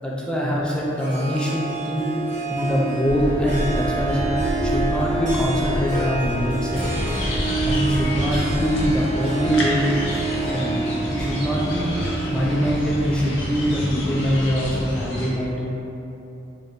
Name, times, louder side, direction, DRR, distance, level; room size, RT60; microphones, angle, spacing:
voice 1, 0.0-2.1 2.5-4.3 4.6-6.9 7.6-9.9 10.5-15.8, equal, 5° left, -5 dB, 0.4 m, -23 dB
Harp, 1.0-13.2, right 3 dB, 40° right, 0.7 m, -28 dB
sound 1, 3.1-9.0, equal, 65° right, 1.5 m, -29 dB
sound 2, 6.7-15.3, left 1 dB, 90° left, 0.7 m, -29 dB
3.8 x 2.2 x 3.5 m, 2.9 s
head